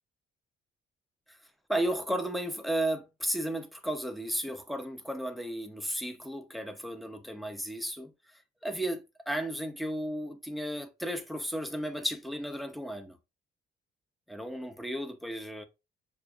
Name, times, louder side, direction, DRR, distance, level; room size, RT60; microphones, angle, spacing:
voice 1, 1.7-8.1 8.6-13.2 14.3-15.6, right 1 dB, ahead, 0.8 m, -34 dB
6.6 x 2.6 x 2.5 m
cardioid pair, 90°, 20 cm